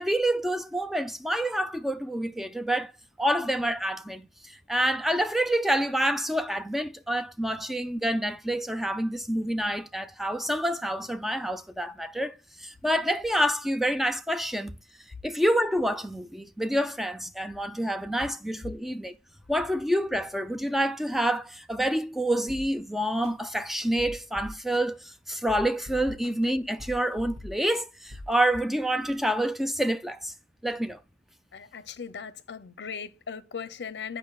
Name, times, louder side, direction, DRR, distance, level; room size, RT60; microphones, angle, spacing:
voice 1, 0.0-2.9 3.2-4.3 4.7-14.8 15.2-19.1 19.5-30.3 30.6-31.0, right 1 dB, ahead, 0.4 m, -27 dB
sound 1, 22.5-22.7 23.2-23.3 23.8-24.8 25.3-26.5 26.8-27.8 28.1-28.3, left 1 dB, 40° right, 1.7 m, -41 dB
voice 2, 31.5-34.2, left 6 dB, 75° left, 0.6 m, -38 dB
8.6 x 5.0 x 2.3 m
head